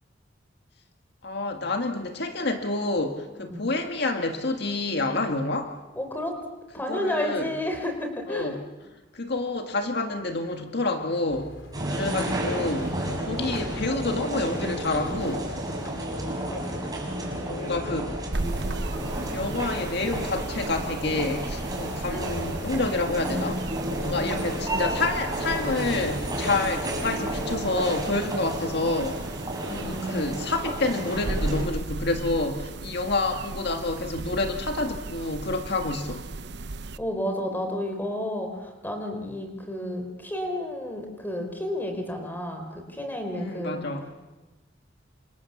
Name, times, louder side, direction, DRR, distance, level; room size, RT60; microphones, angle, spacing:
voice 1, 1.2-5.7 6.9-7.5 8.3-8.6 9.1-11.5 11.9-15.6 17.3-18.2 19.3-23.6 24.0-29.2 29.7-36.2 43.4-44.0, left 2 dB, 60° left, 5 dB, 1.9 m, -28 dB
voice 2, 6.0-6.4 6.7-8.5 12.0-12.4 16.5-16.8 17.2-17.6 24.1-24.5 29.8-30.3 37.0-43.8, left 1 dB, 10° left, 4 dB, 4.6 m, -32 dB
sound 1, 11.3-27.7, left 1 dB, 80° left, 3.7 m, -44 dB
sound 2, 11.7-31.6, right 1 dB, 20° right, 6.6 m, -31 dB
sound 3, 18.3-37.0, right 2 dB, 60° right, 0.9 m, -36 dB
29.0 x 26.5 x 7.3 m, 1.1 s
head